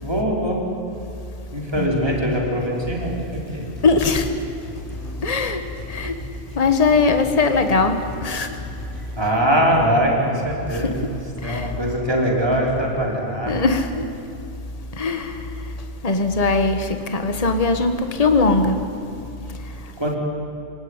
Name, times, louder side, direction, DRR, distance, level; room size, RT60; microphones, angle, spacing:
voice 1, 0.0-0.6 1.5-3.7 9.1-10.9 11.4-13.5 20.0-20.2, equal, 20° right, -1 dB, 4.8 m, -22 dB
sound 1, 1.7-13.9 14.2-14.3, equal, 40° right, 7.9 m, -39 dB
voice 2, 3.8-4.5 5.2-6.2 6.5-8.9 10.7-11.8 13.5-14.1 14.9-18.8 19.4-20.2, left 3 dB, 30° left, 7 dB, 1.6 m, -21 dB
27.0 x 18.0 x 9.8 m, 2.8 s
omnidirectional pair, 1.4 m